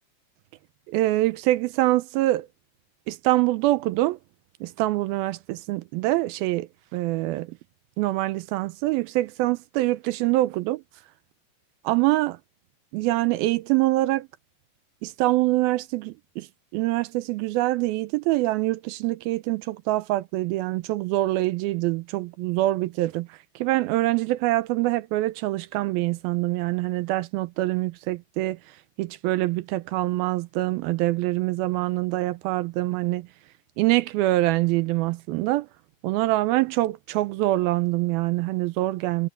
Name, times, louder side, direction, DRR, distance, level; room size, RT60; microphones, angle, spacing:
voice 1, 0.9-2.5 3.1-4.2 4.6-7.5 8.0-10.8 11.9-12.4 12.9-14.3 15.0-16.5 16.7-23.3 23.6-28.6 29.0-33.3 33.8-35.7 36.0-39.3, right 18 dB, 80° right, 2.4 m, -24 dB
omnidirectional pair, 4.5 m